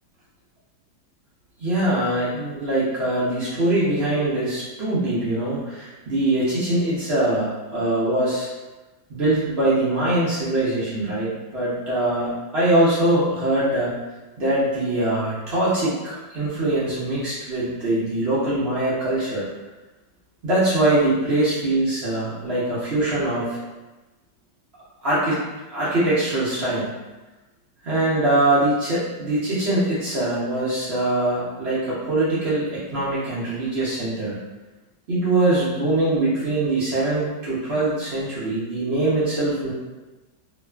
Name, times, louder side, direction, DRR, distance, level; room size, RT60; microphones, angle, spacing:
voice 1, 1.6-8.5 9.1-13.9 14.4-19.5 20.4-23.6 25.0-25.4 25.7-26.9 27.8-34.4 35.1-39.7, right 1 dB, 60° right, -10 dB, 0.7 m, -22 dB
2.8 x 2.4 x 2.2 m, 1.1 s
omnidirectional pair, 1.9 m